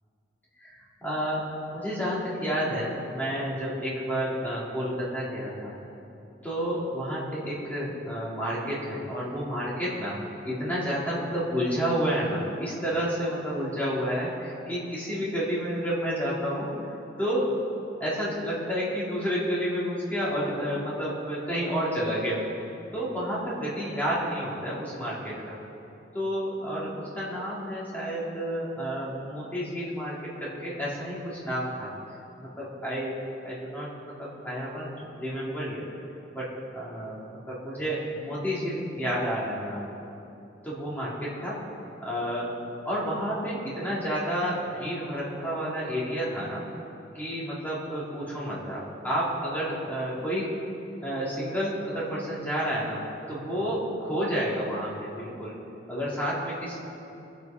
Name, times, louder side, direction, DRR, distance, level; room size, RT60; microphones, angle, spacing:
voice 1, 1.0-1.5 1.7-5.7 6.4-10.2 10.4-16.7 17.2-17.5 18.0-22.7 22.9-25.6 26.1-31.9 32.4-33.1 33.4-34.9 35.2-35.9 36.3-37.2 37.5-39.9 40.6-41.6 42.0-42.5 42.9-46.6 47.1-50.5 51.0-55.5 55.9-56.8, equal, 10° left, -8 dB, 3.5 m, -30 dB
21.5 x 8.3 x 5.4 m, 2.8 s
head